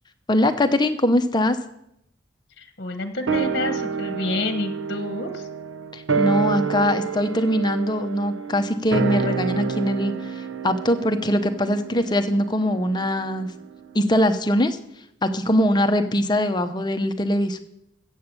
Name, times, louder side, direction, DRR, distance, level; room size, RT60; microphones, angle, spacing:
voice 1, 0.3-1.6 5.9-13.5 13.9-14.8 15.2-17.6, left 1 dB, 20° left, 7 dB, 0.9 m, -22 dB
voice 2, 2.6-5.4, left 2 dB, 55° left, 7 dB, 1.2 m, -29 dB
sound 1, 3.3-13.9 14.1-14.2, right 5 dB, 80° right, 1.0 m, -28 dB
15.0 x 8.2 x 6.8 m, 0.77 s
head